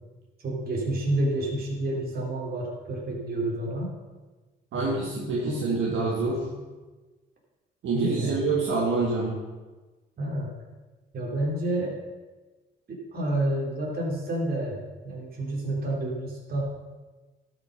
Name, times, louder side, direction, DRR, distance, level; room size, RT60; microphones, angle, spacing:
voice 1, 0.4-3.9 4.7-5.0 5.4-6.0 7.9-8.4 10.2-10.5 11.1-12.0 12.9-16.6, right 1 dB, 50° right, -2 dB, 3.5 m, -29 dB
voice 2, 4.7-6.5 7.8-9.4, right 3 dB, 70° right, -3 dB, 1.7 m, -26 dB
12.5 x 6.1 x 5.3 m, 1.2 s
cardioid pair, 90°, 20 cm